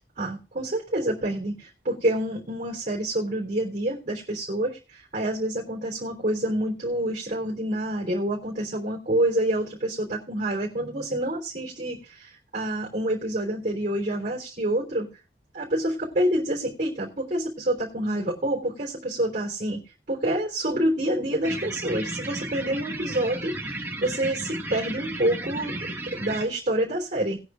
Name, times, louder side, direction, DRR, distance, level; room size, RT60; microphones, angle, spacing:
voice 1, 0.2-15.1 15.5-19.8 20.1-27.4, right 1 dB, 45° right, -2 dB, 3.7 m, -27 dB
sound 1, 21.4-26.4, right 2 dB, 15° right, 1.9 m, -34 dB
19.5 x 9.5 x 2.5 m, 0.33 s
head